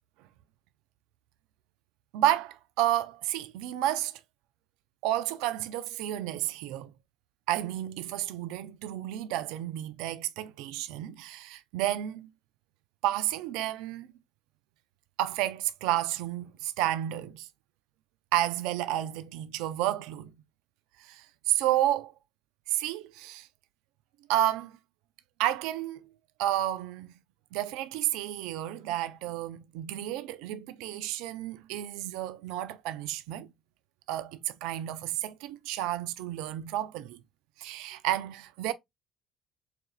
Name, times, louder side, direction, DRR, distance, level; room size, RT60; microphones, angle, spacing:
voice 1, 2.1-4.2 5.0-6.9 7.5-12.3 13.0-14.1 15.2-17.5 18.3-20.3 21.0-22.1 22.7-23.5 24.3-24.8 25.4-26.0 26.4-27.1 27.5-33.5 34.1-37.2 37.6-38.7, right 13 dB, 80° right, 0.4 m, -31 dB
6.8 x 2.5 x 2.3 m
supercardioid pair, 70°, 0 cm